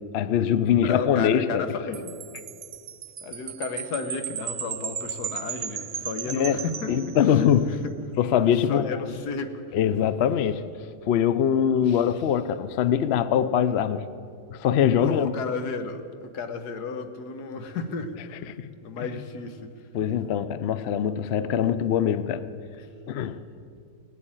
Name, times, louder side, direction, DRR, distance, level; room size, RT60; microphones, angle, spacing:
voice 1, 0.1-1.7 6.3-7.8 8.2-9.0 9.7-10.6 11.1-14.0 14.5-15.3 18.4-18.7 19.0-19.1 19.9-22.4 23.1-23.4, left 9 dB, 60° left, 0.6 m, -23 dB
voice 2, 0.8-2.1 3.2-6.9 8.7-9.6 11.9-12.0 15.0-18.5 18.8-19.7, left 4 dB, 85° left, 1.6 m, -33 dB
Wind chime, 1.9-7.6, right 9 dB, 70° right, 0.5 m, -36 dB
17.5 x 8.4 x 8.9 m
omnidirectional pair, 1.7 m